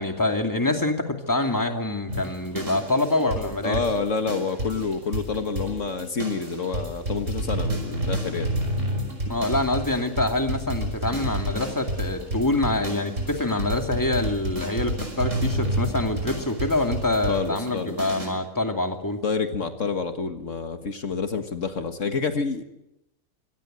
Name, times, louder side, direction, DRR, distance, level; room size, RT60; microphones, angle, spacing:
voice 1, 0.0-3.8 9.3-19.2, left 2 dB, 15° left, 5 dB, 2.5 m, -25 dB
sound 1, 2.1-18.3, right 1 dB, 65° right, 6.2 m, -30 dB
voice 2, 3.6-8.5 17.3-18.0 19.2-22.6, left 4 dB, 65° left, 7 dB, 1.9 m, -28 dB
25.0 x 18.0 x 8.0 m, 0.87 s
omnidirectional pair, 1.4 m